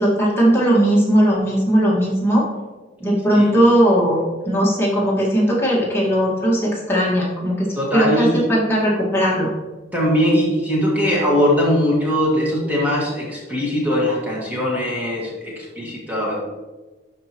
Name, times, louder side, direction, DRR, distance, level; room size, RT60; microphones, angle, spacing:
voice 1, 0.0-2.4 3.0-9.5, equal, 15° left, -5 dB, 1.8 m, -18 dB
voice 2, 3.3-3.7 7.8-8.4 9.9-16.3, equal, 10° right, -5 dB, 1.7 m, -20 dB
12.0 x 4.8 x 3.0 m, 1.2 s
head